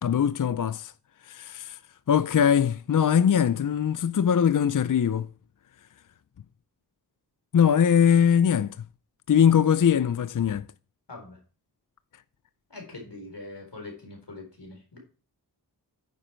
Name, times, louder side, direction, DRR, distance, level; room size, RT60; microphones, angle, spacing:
voice 1, 0.0-0.9 1.3-1.8 2.1-5.3 7.5-8.7 9.3-10.6, left 8 dB, 50° left, 0.5 m, -21 dB
voice 2, 12.7-15.0, left 2 dB, 90° left, 4.2 m, -42 dB
9.7 x 9.2 x 4.5 m
wide cardioid pair, 45°, 40 cm